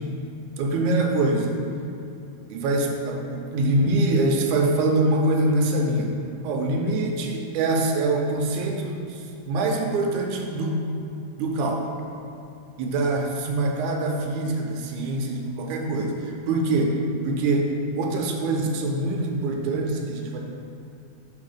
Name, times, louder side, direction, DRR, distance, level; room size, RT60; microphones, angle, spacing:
voice 1, 0.6-1.5 2.5-6.2 6.4-10.8 11.4-12.1 12.8-17.0 17.2-20.4, right 2 dB, 85° right, 1 dB, 2.0 m, -24 dB
5.9 x 4.1 x 5.0 m, 2.7 s
omnidirectional pair, 3.5 m